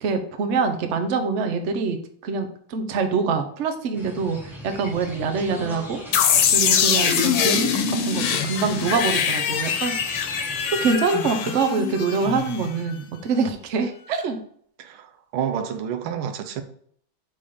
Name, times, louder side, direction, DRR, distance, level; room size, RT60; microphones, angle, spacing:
voice 1, 0.0-2.0 2.2-6.0 6.5-10.0 10.7-14.4, right 4 dB, 70° right, 0.6 m, -25 dB
sound 1, 3.9-10.9, equal, ahead, 0.9 m, -38 dB
sound 2, 6.1-12.9, left 7 dB, 75° left, 1.5 m, -23 dB
voice 2, 14.8-16.6, right 8 dB, 85° right, 1.6 m, -29 dB
5.0 x 4.2 x 5.4 m
omnidirectional pair, 2.3 m